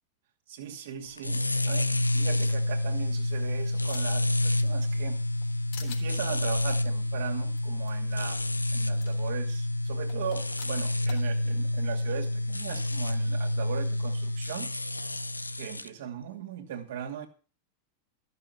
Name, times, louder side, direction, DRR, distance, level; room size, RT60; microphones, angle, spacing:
voice 1, 0.5-5.2 5.8-8.5 8.7-14.7 15.6-17.3, right 9 dB, 55° right, 2.5 m, -39 dB
sound 1, 1.2-15.9, left 1 dB, 85° left, 0.6 m, -29 dB
sound 2, 2.9-4.3 4.7-5.5 5.7-6.1 7.5-7.6 7.9-8.0 9.0-9.1 10.1-11.2, left 8 dB, 55° left, 4.0 m, -46 dB
13.5 x 7.0 x 7.8 m
figure-of-eight pair, 90°, 0 cm